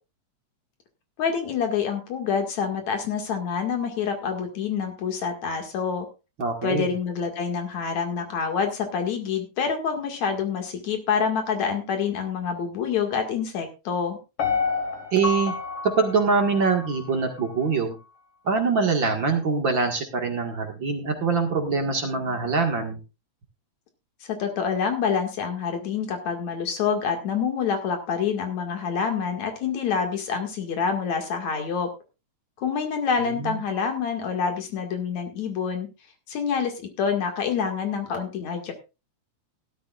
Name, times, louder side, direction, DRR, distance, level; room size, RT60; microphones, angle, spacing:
voice 1, 1.2-6.1 6.6-14.2 24.2-31.9 32.6-35.9 36.3-38.7, left 6 dB, 70° left, 4 dB, 3.3 m, -27 dB
voice 2, 6.4-6.9 15.1-15.5 15.8-18.0 18.4-23.0 33.2-33.6, right 4 dB, 45° right, 3 dB, 2.2 m, -24 dB
Piano, 14.4-17.5 17.9-18.0, left 5 dB, 50° left, 2.8 m, -29 dB
16.5 x 12.5 x 2.4 m, 0.29 s
omnidirectional pair, 3.4 m